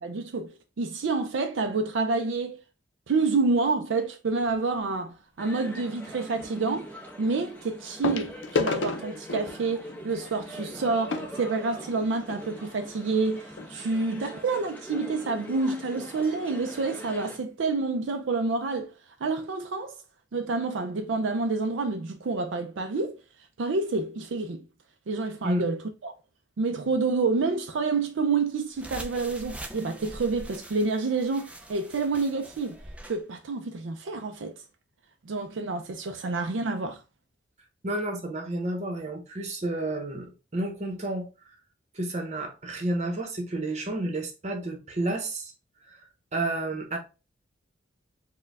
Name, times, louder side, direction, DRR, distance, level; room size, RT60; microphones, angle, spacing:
voice 1, 0.0-2.6 3.1-6.9 7.2-18.9 19.2-19.9 20.3-23.2 23.6-24.6 25.1-26.1 26.6-32.8 33.0-34.6 35.3-37.0, right 3 dB, 80° right, 0.4 m, -28 dB
sound 1, 4.4-4.7 6.4-6.5 8.0-12.4 13.2-13.3 13.5-13.7 14.2-14.3, left 4 dB, 75° left, 0.6 m, -33 dB
sound 2, 5.4-17.4, equal, 10° left, 1.0 m, -43 dB
sound 3, 28.7-33.2, right 1 dB, 5° right, 0.4 m, -43 dB
voice 2, 37.8-41.3 41.9-45.5 45.9-46.0 46.3-47.0, right 1 dB, 40° right, 0.9 m, -31 dB
4.3 x 2.2 x 3.4 m
head